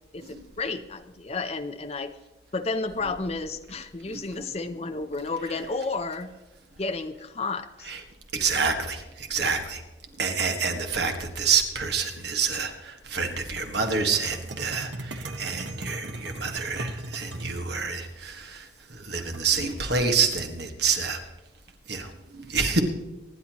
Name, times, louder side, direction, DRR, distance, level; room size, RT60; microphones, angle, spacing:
voice 1, 0.1-2.1 2.5-6.3 6.8-7.9, left 3 dB, 35° left, 7 dB, 0.7 m, -32 dB
voice 2, 8.3-9.8 10.2-21.2 21.9-22.8, right 5 dB, 60° right, 4 dB, 1.8 m, -28 dB
sound 1, 13.6-17.7 19.3-20.1, right 2 dB, 80° right, 1.2 m, -38 dB
25.0 x 10.5 x 3.1 m, 1.1 s
head